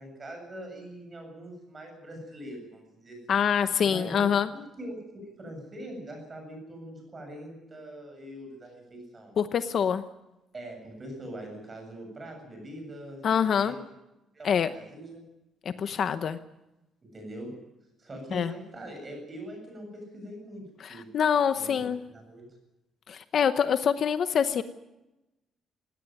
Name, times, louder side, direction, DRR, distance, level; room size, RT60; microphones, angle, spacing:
voice 1, 0.0-3.4 3.8-9.4 10.5-13.8 14.3-15.2 17.1-17.5 18.0-21.1 21.6-21.7 22.1-22.5, right 1 dB, 20° right, 3 dB, 7.6 m, -42 dB
voice 2, 3.3-4.5 9.4-10.0 13.2-13.7 14.4-14.7 15.6-16.4 18.3-18.5 20.8-22.0 23.1-24.6, left 7 dB, 45° left, 11 dB, 0.9 m, -25 dB
19.5 x 17.5 x 9.2 m, 0.97 s
cardioid pair, 165°, 0 cm